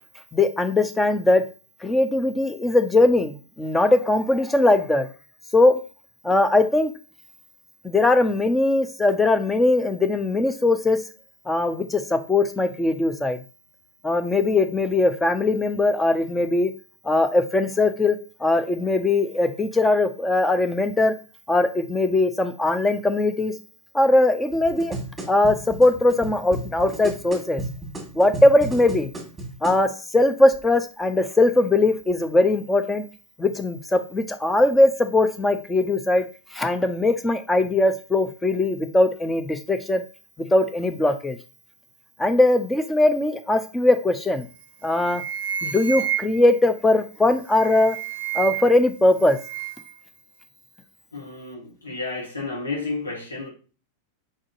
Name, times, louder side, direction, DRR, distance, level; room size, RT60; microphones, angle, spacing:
voice 1, 0.3-1.5 1.8-5.1 5.5-5.8 6.2-6.9 7.8-11.0 11.5-13.4 14.0-16.7 17.0-21.1 21.5-23.5 23.9-25.0 25.3-27.6 28.1-29.1 29.6-33.0 33.4-36.3 36.5-40.0 40.4-41.4 42.2-44.5 44.8-45.2 45.6-48.0 48.3-49.4, left 2 dB, 10° left, 0.6 m, -20 dB
sound 1, 24.5-29.8 30.5-30.6, right 2 dB, 10° right, 1.6 m, -34 dB
sound 2, 44.4-44.6 44.9-46.6 47.4-48.9 49.1-49.9, right 9 dB, 60° right, 0.6 m, -30 dB
voice 2, 51.1-53.5, left 3 dB, 75° left, 1.4 m, -31 dB
5.2 x 3.8 x 2.5 m
figure-of-eight pair, 90°, 0 cm